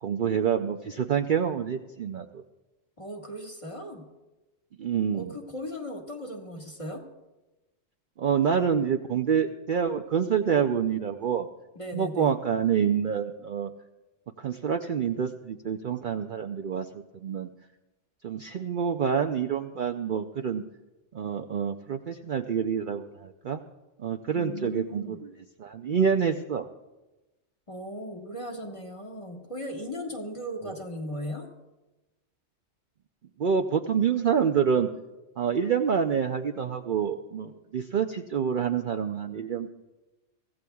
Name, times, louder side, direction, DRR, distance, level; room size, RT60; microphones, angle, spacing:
voice 1, 0.0-2.4 4.8-5.3 8.2-11.5 11.9-13.7 14.4-16.9 17.2-17.5 18.2-20.6 21.1-23.6 24.0-25.2 25.6-26.7 33.4-34.9 35.4-39.7, right 7 dB, 55° right, 5 dB, 0.6 m, -27 dB
voice 2, 3.0-4.0 5.1-7.0 11.8-12.4 24.3-25.2 27.7-31.5, equal, 25° left, 0 dB, 1.7 m, -37 dB
24.0 x 16.0 x 2.3 m, 1.1 s
omnidirectional pair, 1.2 m